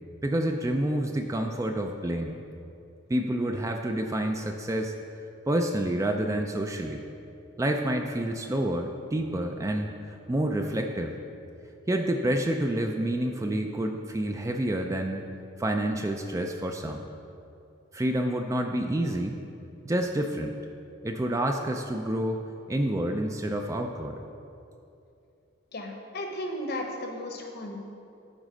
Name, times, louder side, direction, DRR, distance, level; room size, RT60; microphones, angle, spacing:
voice 1, 0.2-2.4 3.1-4.9 5.5-7.0 7.6-11.2 11.9-15.3 15.6-17.0 17.9-19.4 19.8-20.6 21.0-22.4 22.7-24.2, right 1 dB, 15° right, 4 dB, 0.3 m, -28 dB
voice 2, 25.7-27.8, left 1 dB, 50° left, 3 dB, 0.9 m, -35 dB
11.0 x 4.2 x 5.1 m, 2.6 s
head